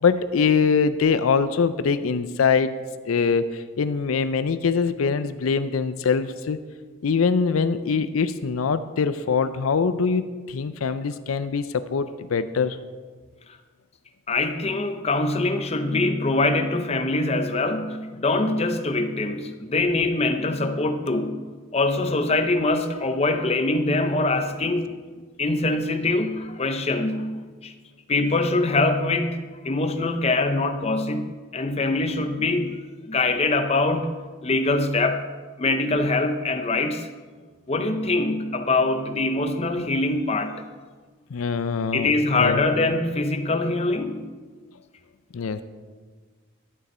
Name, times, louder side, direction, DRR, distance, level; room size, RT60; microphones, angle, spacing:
voice 1, 0.0-2.8 3.0-6.6 7.0-12.8 41.3-42.1 42.3-42.6 45.3-45.6, left 5 dB, 85° left, 12 dB, 0.5 m, -23 dB
voice 2, 14.3-21.4 21.7-25.0 25.4-27.7 28.1-34.1 34.4-35.2 35.6-37.1 37.7-40.6 41.9-44.3, left 2 dB, 30° left, 7 dB, 0.6 m, -23 dB
11.0 x 9.0 x 4.3 m, 1.4 s
head